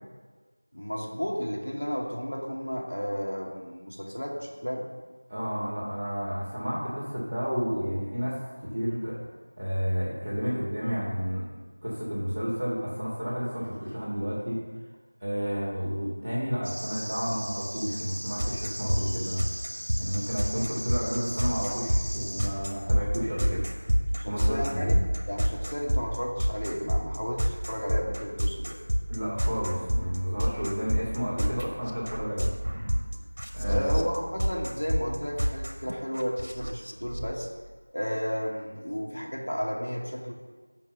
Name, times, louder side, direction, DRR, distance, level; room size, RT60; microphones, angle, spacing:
voice 1, 0.7-4.9 24.2-25.0 25.3-28.8 33.6-37.5 37.9-40.3, equal, 80° left, -2 dB, 2.4 m, -33 dB
voice 2, 5.3-9.2 9.6-11.5 11.8-14.6 15.2-19.5 19.9-23.6 24.2-25.0 29.1-32.5 33.5-33.9, equal, 5° right, -19 dB, 1.5 m, -31 dB
sound 1, 16.6-22.4, equal, 20° right, 2.1 m, -38 dB
sound 2, 18.4-37.2, equal, 50° right, 1.2 m, -28 dB
7.3 x 5.7 x 7.2 m, 1.4 s
figure-of-eight pair, 180°, 0 cm